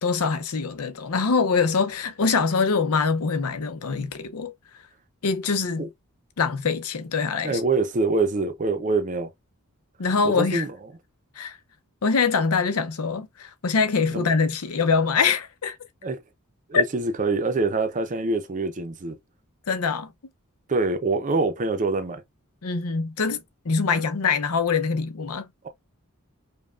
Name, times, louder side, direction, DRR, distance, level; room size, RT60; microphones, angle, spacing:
voice 1, 0.0-4.5 5.2-5.9 6.4-7.6 10.0-10.6 11.4-11.6 12.0-15.8 16.7-16.8 19.7-20.1 22.6-25.5, left 5 dB, 90° left, 0.7 m, -24 dB
voice 2, 7.4-9.3 10.2-10.7 14.1-14.3 16.0-16.2 16.7-19.2 20.7-22.2, right 3 dB, 35° right, 0.6 m, -25 dB
5.3 x 2.3 x 2.3 m
head